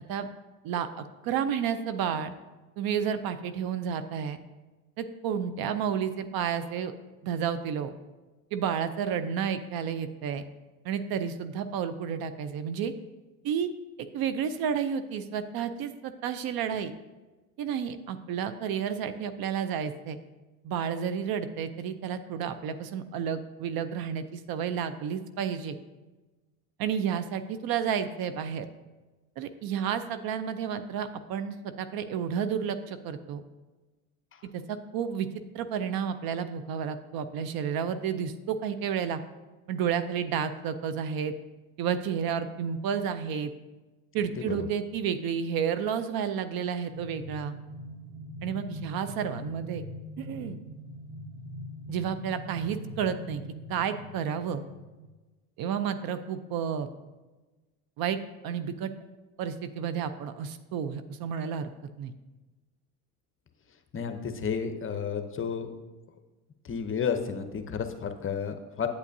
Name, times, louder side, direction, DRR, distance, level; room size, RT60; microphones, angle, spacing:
voice 1, 0.6-2.3 2.8-4.4 5.0-6.9 7.2-7.9 8.5-10.4 10.8-12.9 13.4-13.7 14.0-16.9 17.6-20.2 20.6-25.8 26.8-28.7 29.4-33.4 34.5-35.3 35.5-39.2 39.7-41.3 41.8-43.5 44.1-47.6 48.4-49.8 50.2-50.6 51.9-53.4 53.7-54.6 55.6-56.9 58.0-58.2 58.4-58.9 59.4-61.7 62.0-62.1, right 7 dB, 55° right, 11 dB, 0.6 m, -31 dB
sound 1, 46.9-55.1, equal, 70° right, 1.0 m, -42 dB
voice 2, 63.9-65.7 66.6-68.9, left 6 dB, 30° left, 8 dB, 0.7 m, -31 dB
8.2 x 8.2 x 2.7 m, 1.2 s
hypercardioid pair, 75°, 45 cm